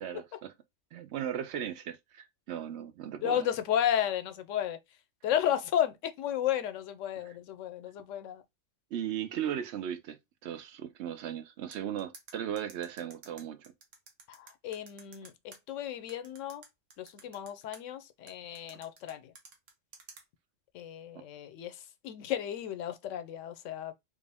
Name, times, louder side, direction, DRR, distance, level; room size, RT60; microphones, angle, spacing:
voice 1, 0.0-0.5 0.9-3.5 7.2-7.4 8.9-13.7 21.1-21.2, right 10 dB, 70° right, 0.8 m, -37 dB
voice 2, 3.2-4.8 5.2-8.4 14.3-16.6 17.0-19.3 20.7-23.9, left 10 dB, 90° left, 0.9 m, -33 dB
sound 1, 11.7-15.6 16.1-17.8 18.3-20.2, right 4 dB, 90° right, 1.3 m, -52 dB
3.5 x 2.5 x 3.3 m
omnidirectional pair, 1.2 m